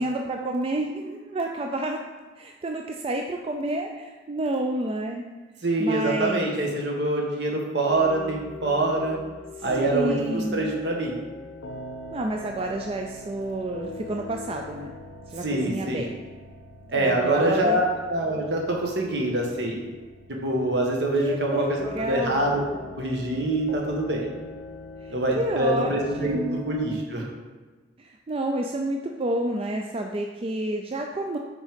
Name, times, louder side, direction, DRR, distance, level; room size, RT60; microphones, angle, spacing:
voice 1, 0.0-2.0 2.4-5.2 5.8-6.5 9.7-10.8 12.1-14.9 15.3-16.1 16.9-17.8 21.2-22.4 25.0-25.9 26.2-26.7 28.0-31.4, right 1 dB, 30° right, 2 dB, 0.4 m, -29 dB
voice 2, 5.6-9.2 9.6-11.1 15.4-16.1 16.9-19.8 20.3-22.6 22.9-24.3 25.1-27.2, right 1 dB, 65° right, -1 dB, 1.3 m, -25 dB
sound 1, 7.9-27.0, left 2 dB, 85° left, 0.7 m, -41 dB
6.2 x 4.1 x 5.1 m, 1.3 s
head